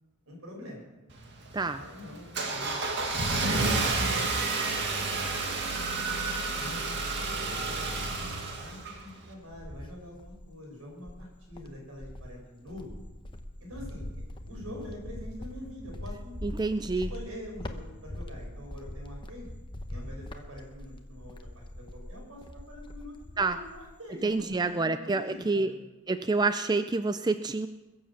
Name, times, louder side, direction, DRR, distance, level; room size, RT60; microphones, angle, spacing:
voice 1, 0.3-0.8 1.8-2.9 3.3-4.3 4.7-5.4 6.5-6.8 7.1-12.9 13.6-16.3 16.9-19.5 19.9-25.8, left 1 dB, 75° right, -1 dB, 6.3 m, -45 dB
Car / Engine starting, 1.1-9.3, right 3 dB, 55° right, 2.0 m, -30 dB
Cricket, 9.0-10.5 11.0-24.0 24.3-24.8, left 1 dB, 20° left, 1.0 m, -42 dB
voice 2, 16.4-17.1 23.4-23.6 24.2-25.7 26.1-27.7, right 3 dB, 20° right, 10 dB, 0.4 m, -28 dB
21.5 x 7.5 x 7.3 m, 1.1 s
head